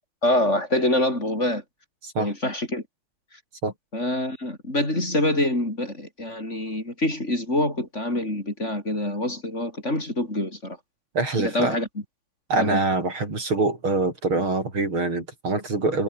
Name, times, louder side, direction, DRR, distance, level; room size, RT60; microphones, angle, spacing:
voice 1, 0.2-1.6 2.2-2.8 3.9-10.8 11.4-11.9 12.6-12.8, left 1 dB, 30° left, 7.0 m, -25 dB
voice 2, 2.0-2.3 3.6-3.7 11.2-11.8 12.5-16.0, right 3 dB, 70° right, 6.9 m, -24 dB
omnidirectional pair, 2.3 m